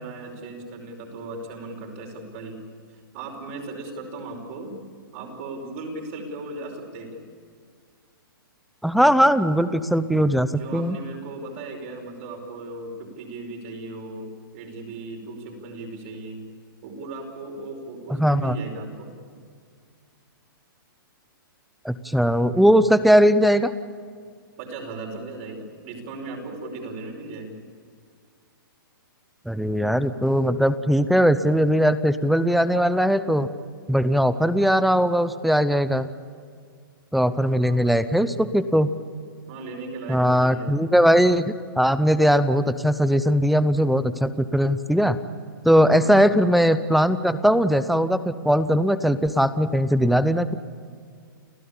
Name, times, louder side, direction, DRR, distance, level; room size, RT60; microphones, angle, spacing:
voice 1, 0.0-2.6 3.1-4.8 5.1-7.2 10.5-16.4 16.8-19.1 24.6-27.6 37.6-38.1 39.5-40.8 45.9-46.4, right 2 dB, 35° right, 2 dB, 5.2 m, -37 dB
voice 2, 8.8-11.0 18.2-18.6 21.8-23.7 29.5-33.5 33.9-36.1 37.1-38.9 40.1-41.5 41.8-45.2 45.6-50.5, equal, ahead, 13 dB, 0.6 m, -19 dB
29.5 x 15.0 x 8.7 m, 2.1 s
hypercardioid pair, 160°, 12 cm